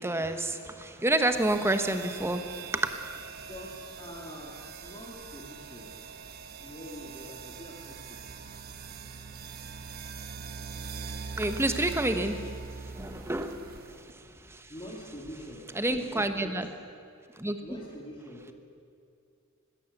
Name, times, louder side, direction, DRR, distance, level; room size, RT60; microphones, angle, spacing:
voice 1, 0.0-2.9 11.4-14.7 15.7-16.7 17.4-17.6, right 1 dB, 10° right, 8 dB, 1.2 m, -29 dB
sound 1, 1.3-14.1, right 5 dB, 45° right, 1.2 m, -42 dB
voice 2, 3.5-6.0 6.6-8.4 14.5-16.5 17.6-18.5, equal, 20° left, -3 dB, 2.3 m, -45 dB
19.5 x 17.0 x 8.1 m, 2.4 s
head